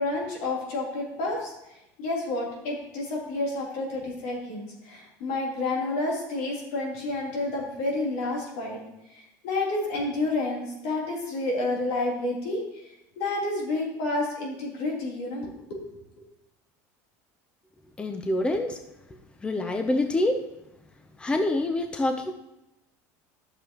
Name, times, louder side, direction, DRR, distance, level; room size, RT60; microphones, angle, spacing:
voice 1, 0.0-1.5 2.0-8.8 9.1-12.6 13.2-15.8, left 2 dB, 80° left, -3 dB, 3.3 m, -30 dB
voice 2, 18.0-18.8 19.4-20.5 21.2-22.3, left 1 dB, 15° left, 6 dB, 0.7 m, -26 dB
11.0 x 6.9 x 3.0 m, 0.89 s
supercardioid pair, 120°, 8 cm